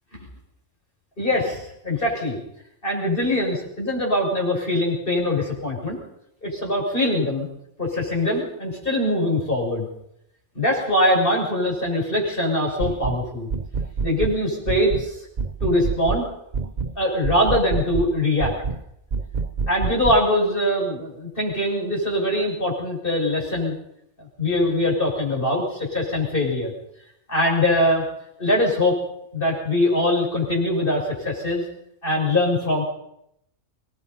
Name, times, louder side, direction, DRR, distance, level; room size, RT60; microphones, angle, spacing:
voice 1, 1.2-2.4 2.8-6.0 6.4-7.5 7.8-9.9 10.6-13.5 14.0-15.2 15.6-16.3 17.0-18.5 19.7-23.8 24.4-26.7 27.3-28.0 28.4-29.0 29.3-31.6 32.0-32.8, left 1 dB, 45° left, -1 dB, 7.2 m, -22 dB
sound 1, 12.8-13.2 13.5-14.4 14.7-15.1 15.4-16.2 16.5-16.9 17.2-18.1 18.4-18.8 19.1-20.2, right 4 dB, 40° right, 1.0 m, -26 dB
25.5 x 20.5 x 5.6 m, 0.77 s
omnidirectional pair, 1.3 m